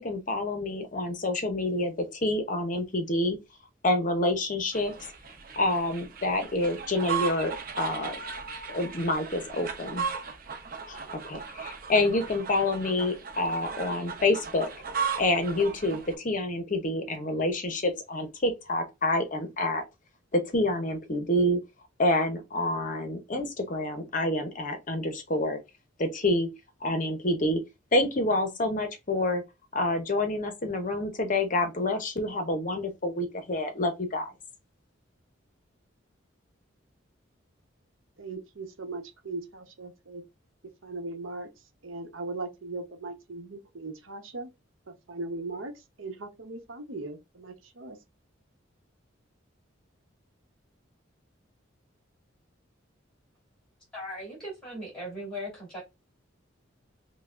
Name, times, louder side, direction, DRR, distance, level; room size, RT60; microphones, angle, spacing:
voice 1, 0.0-3.4 3.8-4.9 5.6-8.2 8.7-10.1 10.9-14.7 15.2-19.8 20.3-21.6 22.0-25.6 26.0-26.5 26.8-27.6 27.9-29.4 29.7-34.3, left 1 dB, 40° left, 0.7 m, -28 dB
sound 1, 4.7-16.1, right 6 dB, 45° right, 0.6 m, -37 dB
voice 2, 38.2-40.2 40.8-41.5 41.8-44.5 44.9-45.7 46.0-48.0, right 3 dB, 80° right, 0.8 m, -38 dB
voice 3, 53.9-55.8, equal, 5° left, 2.4 m, -38 dB
5.5 x 2.2 x 2.4 m
head